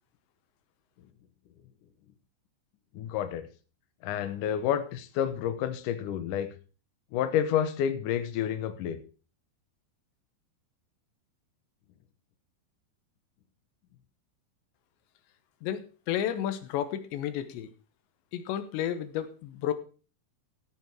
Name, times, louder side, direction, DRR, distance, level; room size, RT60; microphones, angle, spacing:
voice 1, 2.9-3.5 4.0-6.5 7.1-9.0, left 9 dB, 70° left, 10 dB, 2.0 m, -29 dB
voice 2, 15.6-17.7 18.3-19.7, left 10 dB, 85° left, 11 dB, 3.3 m, -32 dB
15.0 x 7.1 x 4.5 m, 0.36 s
omnidirectional pair, 5.0 m